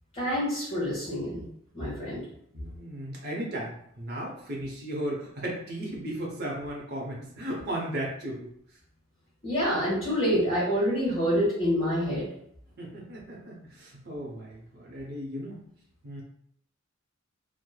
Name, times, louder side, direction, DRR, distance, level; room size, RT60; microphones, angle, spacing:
voice 1, 0.1-1.5 1.7-2.2 9.4-12.3, equal, 30° left, -8 dB, 1.0 m, -27 dB
voice 2, 2.5-8.5 12.8-15.6 16.0-16.2, right 1 dB, 55° right, -2 dB, 0.7 m, -35 dB
3.1 x 2.0 x 2.2 m, 0.68 s
head